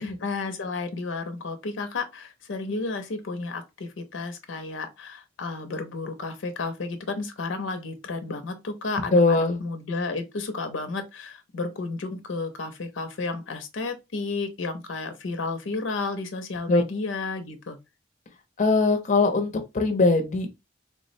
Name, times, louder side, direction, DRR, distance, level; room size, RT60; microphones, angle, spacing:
voice 1, 0.0-17.8, left 3 dB, 85° left, 0.6 m, -32 dB
voice 2, 9.1-9.6 16.7-16.8 18.6-20.6, left 3 dB, 40° left, 0.5 m, -21 dB
3.4 x 2.0 x 2.5 m
head